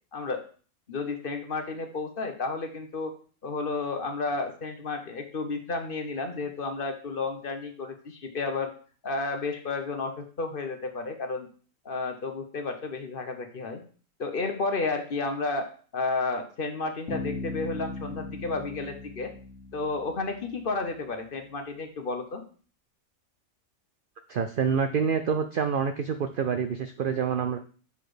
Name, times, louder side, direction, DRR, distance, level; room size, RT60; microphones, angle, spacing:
voice 1, 0.1-0.4 0.9-3.1 3.4-8.7 9.0-11.5 11.8-13.8 14.2-15.7 15.9-19.3 19.7-22.4, left 3 dB, 45° left, 6 dB, 1.0 m, -32 dB
Bass guitar, 17.1-20.8, left 2 dB, 60° left, 1.6 m, -38 dB
voice 2, 24.3-27.6, right 6 dB, 70° right, 8 dB, 0.5 m, -27 dB
6.9 x 4.1 x 4.9 m, 0.41 s
omnidirectional pair, 1.4 m